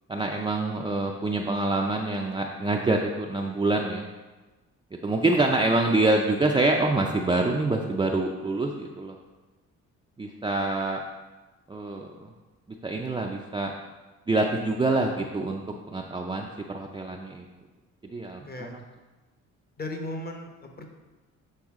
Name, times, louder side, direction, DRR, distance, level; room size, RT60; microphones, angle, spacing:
voice 1, 0.1-4.1 4.9-9.2 10.2-11.0 11.7-12.3 12.8-13.7 14.3-15.6 15.9-16.5 16.7-17.4 18.0-18.8, right 2 dB, 15° right, 0 dB, 0.4 m, -26 dB
voice 2, 18.4-18.8 19.8-20.9, left 1 dB, 30° left, 3 dB, 1.0 m, -36 dB
7.9 x 3.8 x 3.6 m, 1.2 s
cardioid pair, 90°, 30 cm